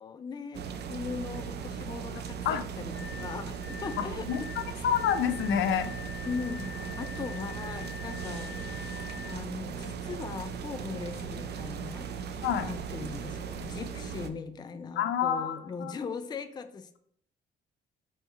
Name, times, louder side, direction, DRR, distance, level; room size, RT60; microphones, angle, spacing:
voice 1, 0.0-4.9 6.2-8.6 9.3-12.1 12.6-17.0, left 5 dB, 20° left, 9 dB, 0.4 m, -39 dB
sound 1, 0.5-14.3, right 6 dB, 55° right, 0.5 m, -38 dB
sound 2, 2.9-9.4, left 7 dB, 30° right, 1.4 m, -45 dB
voice 2, 4.0-4.4 4.8-5.9 12.4-12.7 15.0-15.9, left 8 dB, 75° left, 9 dB, 0.5 m, -28 dB
3.5 x 2.9 x 4.6 m, 0.67 s
cardioid pair, 90°, 20 cm